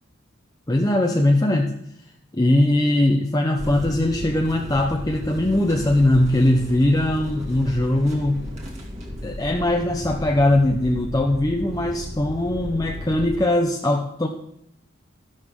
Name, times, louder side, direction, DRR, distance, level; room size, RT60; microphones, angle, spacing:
voice 1, 0.7-1.8 2.3-8.5 9.2-14.3, left 1 dB, 20° left, 1 dB, 0.7 m, -20 dB
sound 1, 3.6-13.4, equal, 35° right, 2.4 m, -35 dB
13.0 x 12.0 x 3.7 m, 0.73 s
head